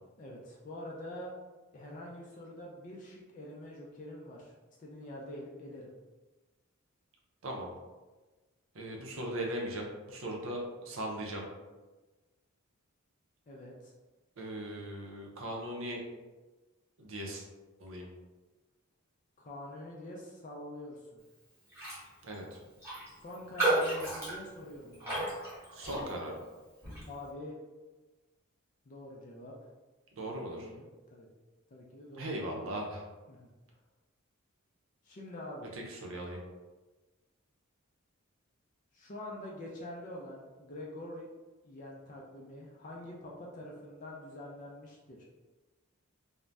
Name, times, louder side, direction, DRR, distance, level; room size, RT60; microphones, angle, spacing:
voice 1, 0.2-1.3 1.7-4.5 4.8-5.9 13.5-13.9 19.4-21.2 23.2-25.3 27.1-27.6 28.9-29.5 30.2-31.3 31.7-32.3 33.3-33.5 35.0-35.7 38.9-41.3 41.6-45.2, left 1 dB, 35° left, -2 dB, 0.4 m, -45 dB
voice 2, 7.4-7.7 8.7-11.5 14.4-16.0 17.0-17.4 17.8-18.1 22.2-22.6 25.7-26.4 30.1-30.7 32.1-33.0 35.7-36.4, right 1 dB, 60° right, 0 dB, 0.6 m, -38 dB
Raindrop, 21.7-22.1 22.3-22.4 22.8-26.4 26.8-27.1, right 2 dB, 10° right, 1.0 m, -33 dB
2.5 x 2.1 x 3.3 m, 1.2 s
head